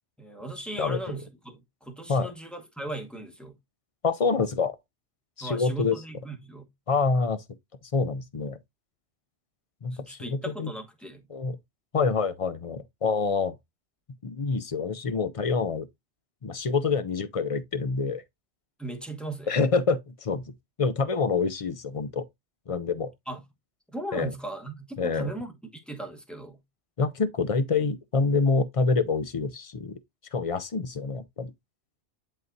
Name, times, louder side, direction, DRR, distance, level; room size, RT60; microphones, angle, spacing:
voice 1, 0.2-3.6 5.4-6.7 9.9-11.3 18.8-19.5 23.3-23.4 23.9-26.6, right 2 dB, ahead, 1.2 m, -37 dB
voice 2, 4.0-4.8 5.4-6.0 6.9-7.4 7.9-8.6 9.8-10.7 11.3-11.6 11.9-13.6 14.2-15.9 16.4-18.2 19.5-22.3 22.7-23.1 24.1-24.3 25.0-25.3 27.0-30.0 30.3-31.5, left 4 dB, 40° left, 0.5 m, -26 dB
11.0 x 3.9 x 2.7 m
omnidirectional pair, 1.2 m